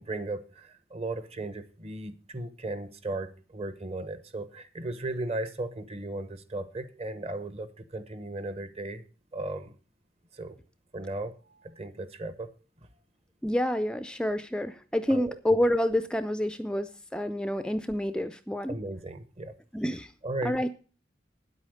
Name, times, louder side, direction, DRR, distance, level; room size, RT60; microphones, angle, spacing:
voice 1, 0.0-9.0 9.3-9.7 10.3-10.6 10.9-12.5 15.1-15.4 18.7-19.5 20.2-20.6, right 2 dB, 35° right, 1.0 m, -36 dB
voice 2, 13.4-18.7 19.7-20.1 20.4-20.7, left 1 dB, 5° left, 0.4 m, -28 dB
9.7 x 8.4 x 6.4 m
head